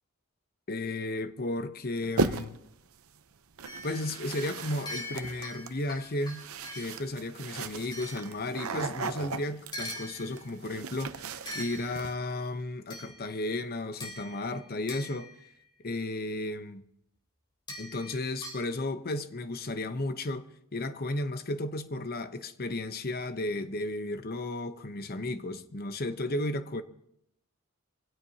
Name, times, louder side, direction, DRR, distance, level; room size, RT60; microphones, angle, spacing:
voice 1, 0.7-2.6 3.8-6.4 6.7-15.3 15.8-16.8 17.8-26.8, left 2 dB, 45° left, 0.8 m, -34 dB
sound 1, 2.2-2.7 3.6-12.1, right 4 dB, 70° right, 0.8 m, -37 dB
sound 2, 3.7-7.1 7.9-9.0 9.7-10.7 11.5-12.3 12.9-13.5 14.0-15.7 17.7-18.7, left 1 dB, 20° left, 4.1 m, -43 dB
24.5 x 16.5 x 2.8 m
head